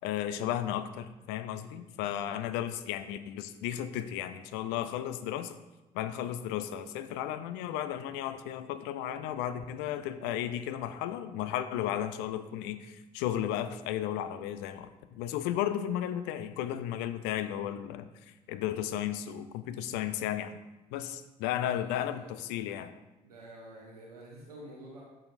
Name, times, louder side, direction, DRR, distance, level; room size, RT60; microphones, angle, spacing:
voice 1, 0.0-5.5 5.9-18.1 18.5-20.6 20.9-22.9, left 11 dB, 65° left, 12 dB, 0.5 m, -34 dB
voice 2, 21.5-22.4 23.2-25.0, right 1 dB, 85° right, -3 dB, 0.8 m, -49 dB
10.5 x 6.1 x 2.6 m, 1.1 s
figure-of-eight pair, 45°, 19 cm